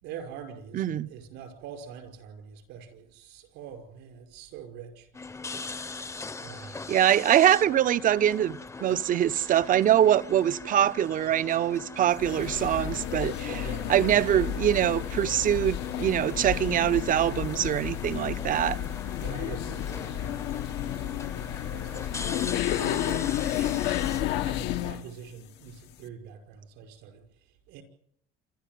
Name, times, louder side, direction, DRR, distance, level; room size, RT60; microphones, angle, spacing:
voice 1, 0.0-5.1 6.4-6.8 13.5-14.3 19.2-20.4 20.8-21.0 21.2-22.1 22.7-27.8, right 7 dB, 80° right, 5.6 m, -44 dB
voice 2, 0.7-1.1 6.9-13.5 13.9-18.8, right 11 dB, 50° right, 1.0 m, -24 dB
sound 1, 5.1-24.2, left 3 dB, 15° left, 0.9 m, -41 dB
sound 2, 12.1-25.1, left 12 dB, 80° left, 1.4 m, -31 dB
27.5 x 12.0 x 9.4 m
cardioid pair, 105°, 18 cm